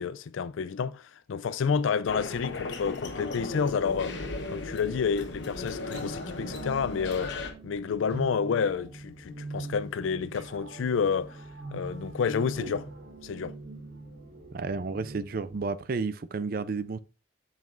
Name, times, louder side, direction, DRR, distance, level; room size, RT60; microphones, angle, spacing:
voice 1, 0.0-4.2 4.5-11.4 11.7-12.9 13.2-13.6, left 6 dB, 85° left, 0.4 m, -29 dB
sound 1, 2.1-7.5, left 2 dB, 65° left, 1.0 m, -36 dB
sound 2, 4.1-15.7, equal, 40° left, 2.6 m, -55 dB
sound 3, 5.8-15.2, right 3 dB, 70° right, 1.3 m, -42 dB
voice 2, 14.5-17.0, right 4 dB, 50° right, 0.4 m, -31 dB
7.4 x 5.6 x 2.5 m
head